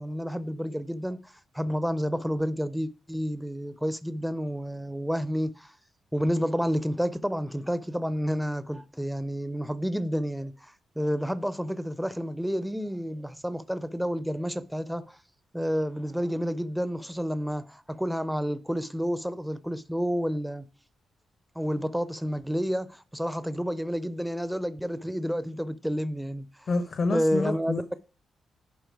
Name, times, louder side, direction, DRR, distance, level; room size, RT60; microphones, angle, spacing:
voice 1, 0.0-5.7 6.1-15.2 15.5-20.7 21.6-26.7 27.1-28.0, equal, ahead, 0.5 m, -30 dB
voice 2, 26.7-27.8, left 3 dB, 55° left, 0.7 m, -28 dB
10.5 x 4.3 x 4.7 m
cardioid pair, 110°, 0 cm